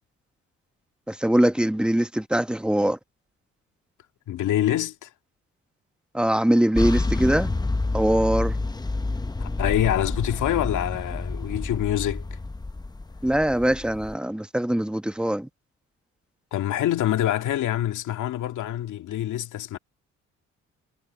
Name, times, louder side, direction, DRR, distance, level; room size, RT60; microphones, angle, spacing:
voice 1, 1.1-3.0 6.1-7.5 7.9-8.5 13.2-15.5, right 1 dB, 5° right, 1.2 m, -22 dB
voice 2, 4.3-5.1 9.4-12.4 16.5-19.8, left 12 dB, 80° left, 2.1 m, -26 dB
sound 1, 6.8-14.1, left 2 dB, 15° left, 0.9 m, -29 dB
cardioid pair, 90°, 30 cm